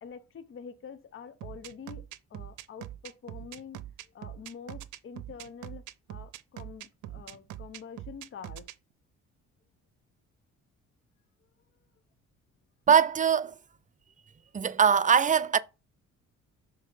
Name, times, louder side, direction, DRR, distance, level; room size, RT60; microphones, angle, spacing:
voice 1, 0.0-8.7, left 6 dB, 45° left, 0.8 m, -46 dB
sound 1, 1.4-8.7, right 13 dB, 80° right, 0.6 m, -42 dB
voice 2, 12.9-13.5 14.5-15.6, right 7 dB, 25° right, 0.5 m, -22 dB
6.4 x 3.6 x 5.4 m
cardioid pair, 90°, 30 cm